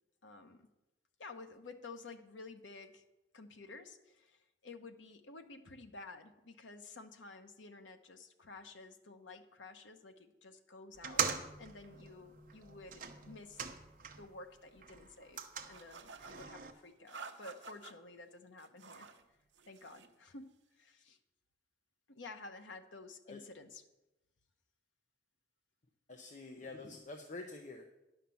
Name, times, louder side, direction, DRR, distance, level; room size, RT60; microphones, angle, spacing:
voice 1, 0.2-0.7 1.2-3.0 3.3-13.6 14.2-19.1 19.7-21.2 22.1-23.8, left 3 dB, 90° left, 7 dB, 0.9 m, -52 dB
sound 1, 10.9-14.4 14.7-16.7, right 6 dB, 45° right, 0.8 m, -41 dB
sound 2, 15.7-16.5 17.1-17.9 18.6-19.2 19.5-20.1, right 4 dB, 80° right, 0.8 m, -51 dB
voice 2, 26.1-27.8, left 2 dB, 40° left, 4 dB, 0.7 m, -47 dB
10.5 x 5.8 x 7.0 m, 0.99 s
head